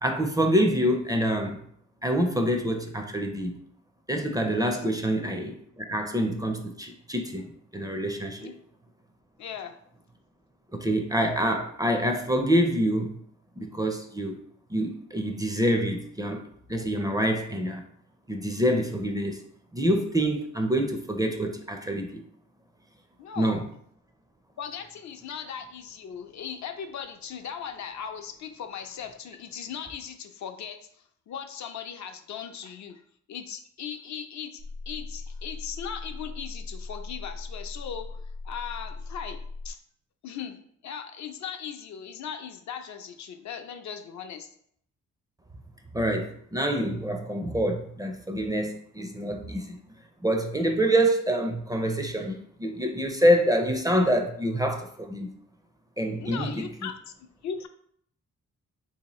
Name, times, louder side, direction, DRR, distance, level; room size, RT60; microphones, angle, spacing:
voice 1, 0.0-1.6 2.0-3.6 4.1-8.5 10.7-13.2 13.6-14.4 14.7-16.4 16.7-17.8 18.3-19.4 19.7-22.2 23.4-23.6 45.9-49.8 50.2-55.3 56.0-56.6, equal, 10° right, 4 dB, 0.4 m, -26 dB
voice 2, 9.4-9.8 23.2-23.6 24.6-30.8 31.3-33.0 33.3-38.1 38.4-39.8 40.2-44.5 56.2-57.0 57.4-57.7, left 7 dB, 65° left, 6 dB, 0.5 m, -38 dB
sound 1, 34.6-39.7, left 3 dB, 60° right, 0.6 m, -39 dB
3.4 x 2.7 x 3.0 m, 0.66 s
cardioid pair, 75°, 32 cm